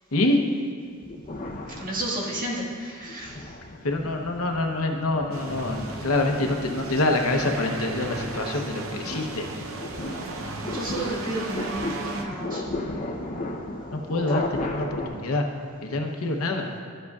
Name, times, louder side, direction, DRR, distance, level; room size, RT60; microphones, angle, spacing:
voice 1, 0.1-0.4 3.8-9.5 13.9-15.5 15.8-16.7, left 2 dB, 85° left, 3 dB, 0.9 m, -26 dB
sound 1, 1.0-2.5 3.0-15.1, left 2 dB, 40° left, 0.8 m, -35 dB
voice 2, 1.7-3.5 10.7-12.6, right 1 dB, 40° right, -5 dB, 1.7 m, -32 dB
sound 2, 5.3-12.3, right 3 dB, 70° right, 0.7 m, -36 dB
12.5 x 7.7 x 2.4 m, 2.2 s
head